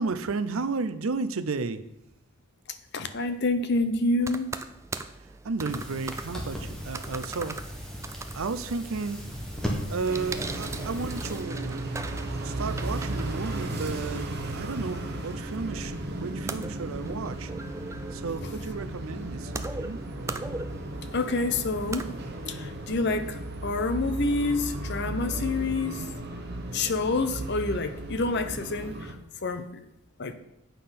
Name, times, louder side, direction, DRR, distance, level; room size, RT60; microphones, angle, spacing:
voice 1, 0.0-1.8 5.2-7.6 8.3-9.3 9.9-11.8 12.4-17.5 18.1-20.0, right 4 dB, 70° right, 13 dB, 0.6 m, -33 dB
voice 2, 2.9-4.5 21.1-22.0 22.5-26.0 26.7-29.2 29.4-29.6 30.2-30.3, left 3 dB, 50° left, 9 dB, 0.7 m, -27 dB
sound 1, 4.2-22.6, right 3 dB, 15° right, 0.3 m, -41 dB
sound 2, 5.7-11.4, equal, 5° left, 1.3 m, -37 dB
sound 3, 10.0-29.1, right 1 dB, 50° right, 1.1 m, -35 dB
8.4 x 5.7 x 5.7 m, 0.83 s
head